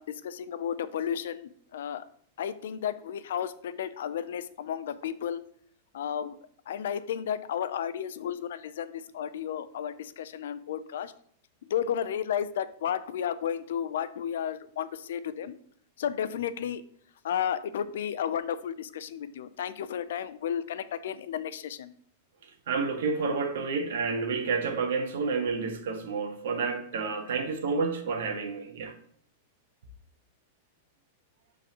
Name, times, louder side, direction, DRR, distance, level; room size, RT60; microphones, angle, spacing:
voice 1, 0.0-2.0 2.4-5.4 5.9-6.4 6.7-11.1 11.7-15.6 16.0-16.8 17.2-21.9, left 9 dB, 75° left, 0.5 m, -33 dB
voice 2, 22.7-28.9, right 4 dB, 70° right, 1.3 m, -30 dB
11.0 x 3.9 x 3.0 m
supercardioid pair, 165°, 0 cm